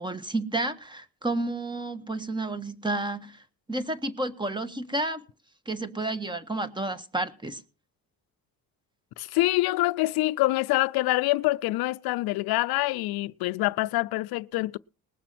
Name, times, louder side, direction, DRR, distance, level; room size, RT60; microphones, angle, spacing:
voice 1, 0.0-5.2 5.6-7.6, right 2 dB, 15° right, 1.6 m, -31 dB
voice 2, 9.2-14.8, left 19 dB, 85° left, 0.6 m, -25 dB
20.0 x 6.9 x 5.9 m
cardioid pair, 85°, 36 cm